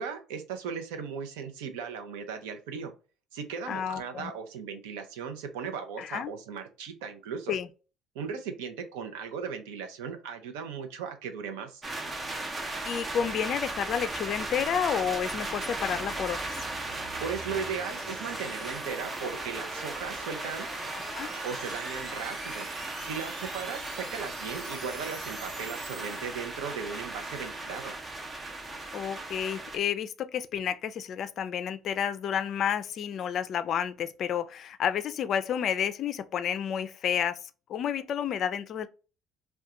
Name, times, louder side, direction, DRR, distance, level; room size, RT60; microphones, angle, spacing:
voice 1, 0.0-2.9 3.3-7.5 8.1-11.8 17.2-20.7 21.4-22.7 23.0-27.9, right 6 dB, 85° right, 0.5 m, -37 dB
voice 2, 3.7-4.3 6.0-6.3 7.5-7.7 12.9-16.6 21.1-21.3 28.9-37.4 37.7-38.9, left 8 dB, 55° left, 0.3 m, -30 dB
sound 1, 11.8-29.8, right 2 dB, 25° right, 0.6 m, -37 dB
sound 2, 12.6-26.9, right 2 dB, 60° right, 1.2 m, -46 dB
2.4 x 2.2 x 2.8 m
supercardioid pair, 85°, 0 cm